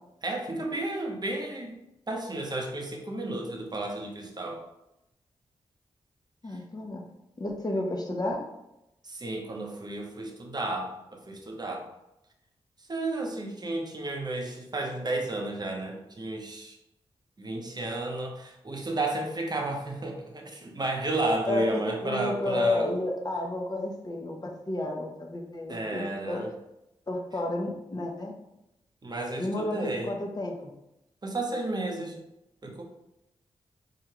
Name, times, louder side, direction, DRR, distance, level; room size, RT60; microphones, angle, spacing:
voice 1, 0.2-1.7 2.1-4.6 6.5-6.6 9.0-11.9 12.8-16.8 17.4-22.9 25.7-26.5 29.0-30.1 31.2-32.2 32.6-32.8, right 2 dB, 35° right, 1 dB, 0.9 m, -32 dB
voice 2, 6.4-7.0 7.4-8.4 21.4-26.4 27.1-28.3 29.4-30.7, left 1 dB, 35° left, 1 dB, 0.9 m, -31 dB
4.7 x 2.4 x 3.0 m, 0.88 s
supercardioid pair, 40°, 12 cm